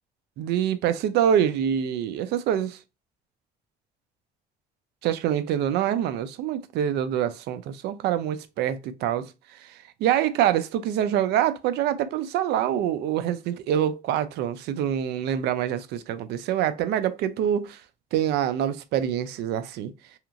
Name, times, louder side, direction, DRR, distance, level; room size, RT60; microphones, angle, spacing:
voice 1, 0.4-2.8 5.0-9.3 9.6-17.8 18.1-19.9, right 10 dB, 80° right, 0.4 m, -25 dB
2.8 x 2.4 x 2.4 m
cardioid pair, 110°, 17 cm